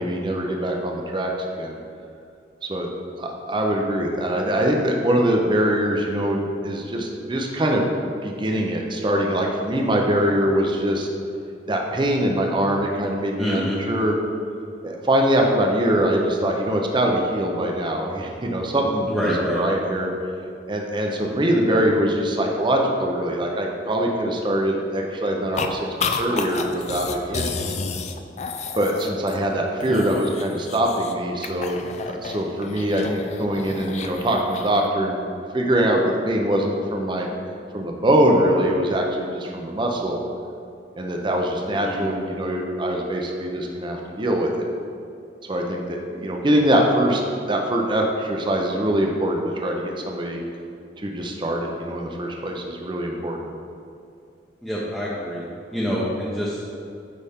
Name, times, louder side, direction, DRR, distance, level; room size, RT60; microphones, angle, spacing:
voice 1, 0.0-1.8 2.6-2.9 3.2-7.9 8.2-11.1 11.7-14.2 14.8-20.1 20.7-27.7 28.8-31.8 32.1-35.2 35.5-37.3 37.7-40.2 41.0-44.7 45.4-47.2 47.5-50.4 51.0-53.5, right 1 dB, 25° right, 1 dB, 0.6 m, -23 dB
voice 2, 13.4-13.8 19.1-19.6 29.9-30.2 41.8-42.1 54.6-55.4 55.7-56.6, equal, 5° left, -8 dB, 0.8 m, -26 dB
sound 1, 25.6-25.7 26.0-29.5 29.8-31.1 31.4-34.9, left 5 dB, 40° left, 0.4 m, -31 dB
8.5 x 5.2 x 3.6 m, 2.5 s
head